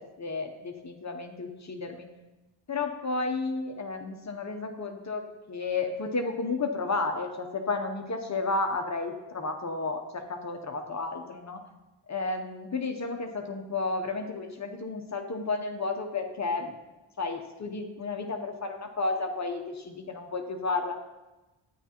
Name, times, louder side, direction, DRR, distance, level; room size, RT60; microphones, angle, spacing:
voice 1, 0.0-2.1 2.7-5.2 5.5-11.6 12.1-16.7 17.2-21.0, left 3 dB, 35° left, 4 dB, 0.7 m, -32 dB
12.5 x 9.1 x 2.9 m, 1.1 s
wide cardioid pair, 170°, 49 cm